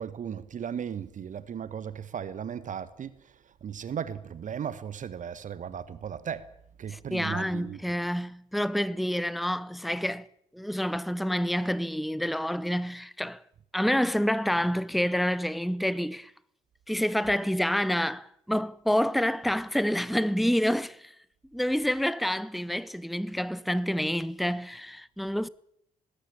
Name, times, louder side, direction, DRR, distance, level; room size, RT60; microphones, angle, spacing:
voice 1, 0.0-6.5 6.8-7.8, right 8 dB, 45° right, 1.3 m, -36 dB
voice 2, 6.9-10.3 10.5-13.4 13.7-16.3 16.9-21.1 21.5-25.5, equal, ahead, 0.7 m, -28 dB
19.5 x 18.5 x 8.5 m
figure-of-eight pair, 45°, 18 cm